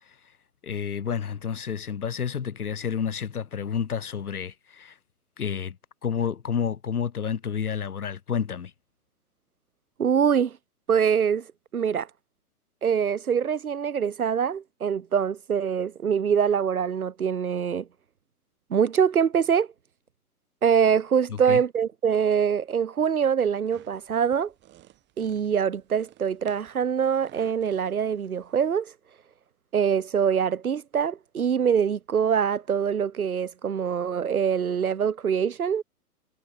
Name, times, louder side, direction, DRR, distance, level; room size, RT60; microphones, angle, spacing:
voice 1, 0.6-4.9 5.4-5.8 6.0-8.7 21.5-21.6, left 7 dB, 70° left, 1.6 m, -30 dB
voice 2, 10.0-10.6 10.9-11.5 11.7-12.1 12.8-17.9 18.7-19.7 20.6-24.5 25.2-28.9 29.7-35.8, right 7 dB, 65° right, 3.3 m, -24 dB
sound 1, 23.7-28.7, right 15 dB, 25° right, 6.5 m, -55 dB
figure-of-eight pair, 120°, 46 cm